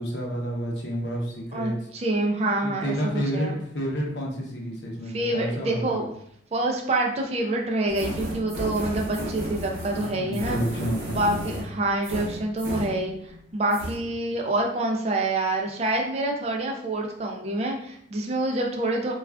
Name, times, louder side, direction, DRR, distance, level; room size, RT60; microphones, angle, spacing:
voice 1, 0.0-1.8 2.6-6.0 10.0-11.6 14.2-14.3, equal, 70° left, -2 dB, 0.8 m, -30 dB
voice 2, 1.5-3.6 5.1-6.1 6.5-10.6 11.1-19.1, right 2 dB, 35° right, 1 dB, 0.4 m, -27 dB
sound 1, 7.9-13.4 13.7-14.0, equal, 50° right, 0.7 m, -34 dB
2.3 x 2.3 x 3.3 m, 0.68 s
head